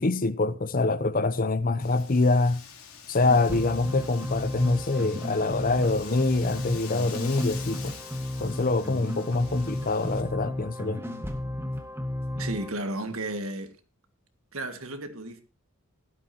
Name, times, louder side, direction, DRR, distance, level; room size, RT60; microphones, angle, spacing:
voice 1, 0.0-2.6 3.1-8.0 8.4-11.0, left 3 dB, 40° left, 0.7 m, -25 dB
Wind, 1.8-10.2, left 7 dB, 80° left, 3.5 m, -45 dB
sound 1, 3.2-12.7, left 1 dB, 10° right, 1.5 m, -34 dB
voice 2, 12.4-13.8 14.5-15.4, right 2 dB, 75° right, 1.8 m, -33 dB
17.0 x 12.5 x 2.8 m
head